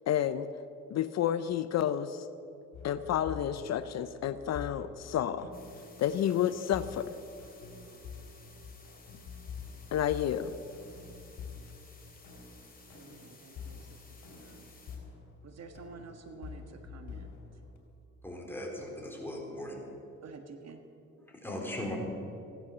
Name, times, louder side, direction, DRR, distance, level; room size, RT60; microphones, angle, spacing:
voice 1, 0.1-0.5 0.9-2.3 2.8-5.5 6.0-7.1 9.9-10.5, left 10 dB, 60° left, 13 dB, 0.6 m, -30 dB
sound 1, 2.7-17.8, left 6 dB, 85° left, 3.0 m, -47 dB
sound 2, 4.6-14.9 15.2-15.3, right 2 dB, 25° right, 4.2 m, -61 dB
sound 3, 5.5-15.0, left 4 dB, 30° left, 3.5 m, -57 dB
voice 2, 12.9-14.0 14.3-14.7 15.4-17.6 20.2-20.8, right 4 dB, 60° right, 7 dB, 1.6 m, -50 dB
voice 3, 18.2-19.8 21.3-22.0, left 1 dB, 5° left, -1 dB, 3.8 m, -38 dB
16.0 x 11.5 x 6.7 m, 2.8 s
cardioid pair, 90°, 30 cm